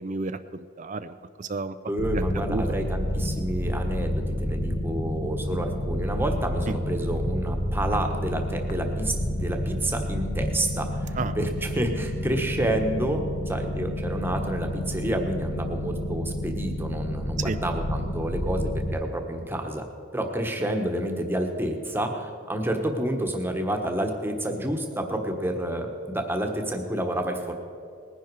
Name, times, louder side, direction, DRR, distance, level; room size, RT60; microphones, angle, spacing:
voice 1, 0.0-1.8 2.1-2.6 11.1-11.4 17.4-17.6, right 3 dB, 35° right, 12 dB, 0.4 m, -32 dB
voice 2, 1.9-19.8 20.1-27.5, right 1 dB, 10° right, 3 dB, 1.3 m, -29 dB
sound 1, 2.0-19.0, equal, 50° left, 1.2 m, -30 dB
20.0 x 10.5 x 4.7 m, 2.5 s
head